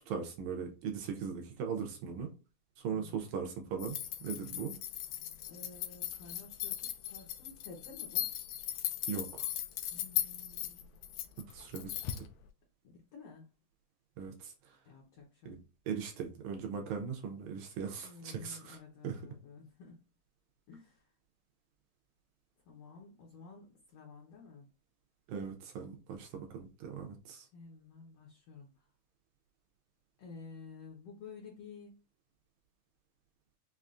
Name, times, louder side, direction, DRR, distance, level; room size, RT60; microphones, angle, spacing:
voice 1, 0.1-2.3 2.8-4.7 9.1-9.5 11.5-12.3 14.2-14.5 15.5-15.6 15.9-18.8 19.0-19.2 25.3-27.5, right 6 dB, 80° right, 4 dB, 1.7 m, -39 dB
sound 1, 3.8-12.3, left 12 dB, 85° left, 1.6 m, -38 dB
voice 2, 5.5-8.3 9.9-10.9 12.8-13.5 14.8-15.5 18.0-20.1 20.7-21.0 22.7-24.7 27.5-28.7 30.2-31.9, left 4 dB, 70° left, -1 dB, 1.5 m, -52 dB
5.4 x 2.3 x 2.4 m, 0.34 s
omnidirectional pair, 3.8 m